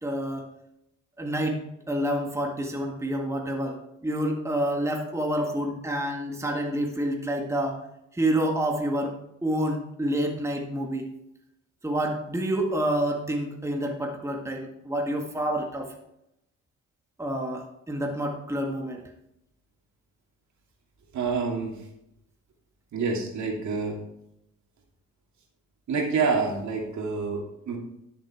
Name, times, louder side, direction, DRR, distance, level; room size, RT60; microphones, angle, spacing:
voice 1, 0.0-0.5 1.2-7.8 8.1-11.1 11.8-15.9 17.2-19.0, right 1 dB, 10° right, 2 dB, 1.7 m, -28 dB
voice 2, 21.1-21.8 22.9-24.0 25.9-27.8, right 4 dB, 70° right, 1 dB, 2.7 m, -27 dB
11.0 x 7.2 x 4.4 m, 0.82 s
cardioid pair, 90°, 30 cm